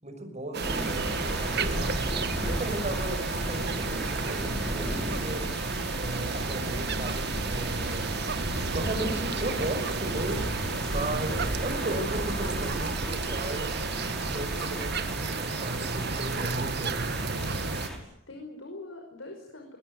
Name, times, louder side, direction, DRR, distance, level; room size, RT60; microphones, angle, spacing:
voice 1, 0.0-2.1 2.5-5.5 6.0-8.1 8.7-10.4 10.9-13.7 14.3-17.0, right 1 dB, 35° right, 6 dB, 6.3 m, -36 dB
sound 1, 0.5-17.9, right 4 dB, 55° right, 1.5 m, -32 dB
sound 2, 0.6-18.0, equal, 5° left, 5.4 m, -34 dB
voice 2, 17.3-19.8, left 2 dB, 85° left, 3 dB, 5.6 m, -44 dB
23.0 x 20.5 x 9.0 m, 0.74 s
head